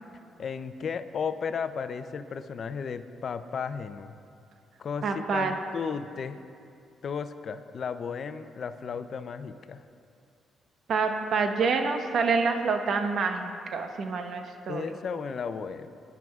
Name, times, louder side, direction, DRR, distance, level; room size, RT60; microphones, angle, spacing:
voice 1, 0.4-4.1 4.8-6.4 7.0-9.8 14.7-15.9, left 6 dB, 55° left, 11 dB, 0.5 m, -34 dB
voice 2, 5.0-5.5 10.9-14.9, right 4 dB, 60° right, 5 dB, 1.0 m, -27 dB
21.5 x 10.5 x 2.4 m, 2.4 s
cardioid pair, 90°, 0 cm